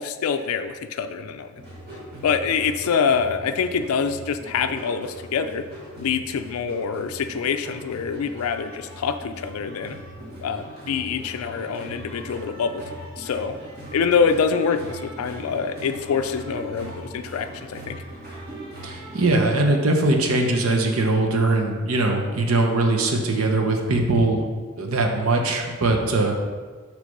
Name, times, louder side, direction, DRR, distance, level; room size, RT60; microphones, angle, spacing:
voice 1, 0.0-1.5 2.2-5.6 6.0-10.0 10.4-12.8 13.2-13.5 13.9-18.0, left 6 dB, 80° left, 9 dB, 0.4 m, -25 dB
sound 1, 1.6-19.5, right 1 dB, 50° right, 1.7 m, -40 dB
voice 2, 18.8-24.4 24.8-26.3, right 2 dB, 80° right, 3 dB, 0.8 m, -21 dB
6.4 x 3.3 x 5.3 m, 1.5 s
head